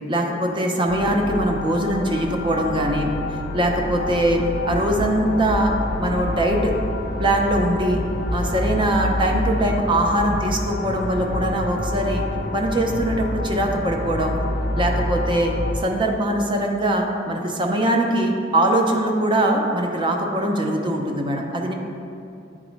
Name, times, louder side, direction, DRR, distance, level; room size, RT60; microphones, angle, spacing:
voice 1, 0.1-3.1 3.5-6.7 7.2-8.0 8.3-12.2 12.5-14.4 14.7-21.7, right 1 dB, 25° right, 2 dB, 0.6 m, -22 dB
sound 1, 0.9-15.8, left 1 dB, 55° left, 0.6 m, -27 dB
10.0 x 3.7 x 3.1 m, 2.6 s
head